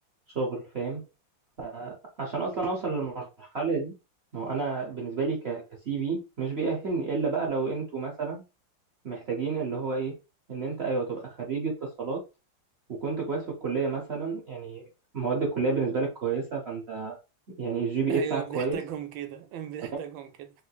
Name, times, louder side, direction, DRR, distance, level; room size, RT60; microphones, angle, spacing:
voice 1, 0.3-1.0 1.6-3.9 4.3-8.4 9.0-10.2 10.5-12.2 12.9-14.8 15.1-17.2 17.6-18.8, right 4 dB, 65° right, 0.6 m, -30 dB
voice 2, 18.1-20.5, right 10 dB, 85° right, 1.4 m, -37 dB
3.5 x 3.1 x 2.3 m
omnidirectional pair, 2.1 m